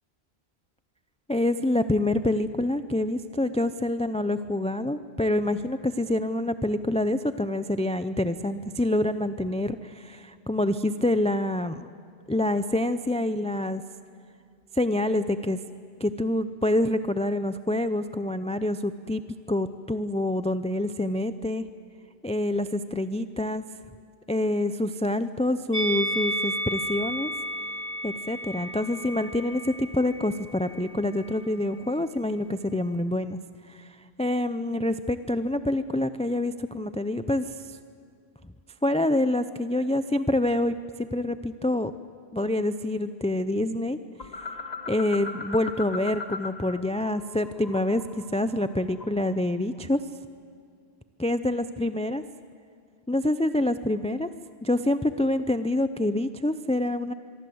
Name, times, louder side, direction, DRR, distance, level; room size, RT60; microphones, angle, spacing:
voice 1, 1.3-11.9 12.3-13.8 14.7-15.6 16.0-19.2 19.5-21.6 22.2-23.6 24.3-27.3 28.0-33.4 33.7-37.8 38.4-38.5 38.8-41.9 42.3-44.0 44.9-50.0 51.2-52.2 53.1-54.3 54.6-57.1, left 1 dB, 10° left, 11 dB, 0.4 m, -26 dB
Musical instrument, 25.7-31.0 31.2-31.4, right 1 dB, 15° right, 4.2 m, -32 dB
sound 1, 44.2-46.8 47.1-49.4, left 3 dB, 40° left, 1.3 m, -38 dB
25.0 x 23.5 x 7.9 m, 2.4 s
omnidirectional pair, 1.1 m